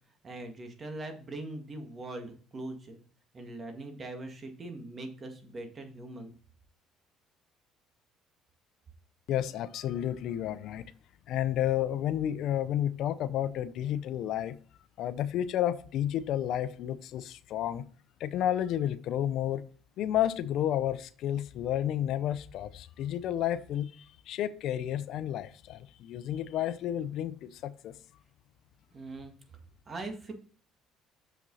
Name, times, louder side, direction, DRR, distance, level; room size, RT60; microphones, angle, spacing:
voice 1, 0.2-3.0 3.3-6.3 28.9-29.3 29.9-30.3, right 2 dB, 35° right, 1.9 m, -41 dB
voice 2, 9.3-10.8 11.3-14.6 15.0-17.8 18.2-19.6 20.0-27.9, left 11 dB, 70° left, 0.6 m, -31 dB
7.0 x 5.9 x 4.0 m
cardioid pair, 105°, 0 cm